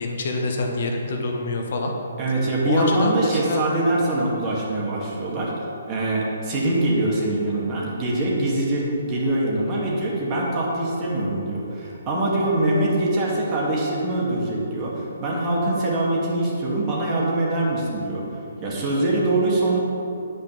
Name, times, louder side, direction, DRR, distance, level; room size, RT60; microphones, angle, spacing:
voice 1, 0.0-1.9 2.6-3.7, left 3 dB, 55° left, 2 dB, 1.2 m, -25 dB
voice 2, 2.2-5.5 5.9-18.2 18.6-19.8, right 2 dB, 25° right, -5 dB, 2.3 m, -23 dB
9.1 x 5.0 x 7.0 m, 2.9 s
hypercardioid pair, 140°, 0 cm